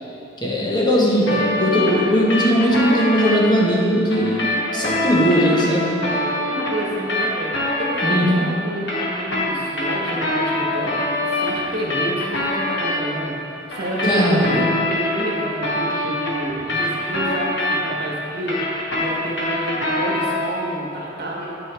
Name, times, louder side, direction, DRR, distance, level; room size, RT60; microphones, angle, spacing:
voice 1, 0.4-4.5 4.7-6.0 8.0-8.5 14.0-14.6, equal, 25° left, -3 dB, 0.9 m, -18 dB
sound 1, 1.3-3.4 4.1-8.4 8.7-13.0 13.7-18.0 18.3-20.5, left 1 dB, 65° left, 1.7 m, -24 dB
voice 2, 6.0-13.3 13.7-21.6, equal, 55° right, -4 dB, 1.5 m, -29 dB
9.0 x 6.2 x 4.5 m, 2.9 s
head